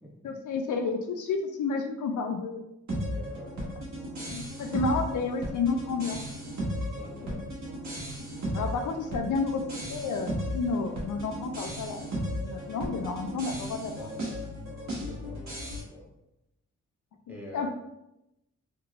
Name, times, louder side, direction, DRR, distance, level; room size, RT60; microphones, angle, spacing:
voice 1, 0.2-2.6 4.2-6.2 7.2-7.5 8.5-12.1 12.4-14.1 17.5-17.7, left 4 dB, 75° left, 5 dB, 0.5 m, -31 dB
sound 1, 2.9-15.8, equal, 60° right, 1.4 m, -35 dB
voice 2, 3.1-3.6 7.0-7.4 15.0-15.4 15.7-16.1 17.3-17.7, equal, 5° right, -5 dB, 1.2 m, -46 dB
3.3 x 3.0 x 2.4 m, 0.86 s
cardioid pair, 60°, 31 cm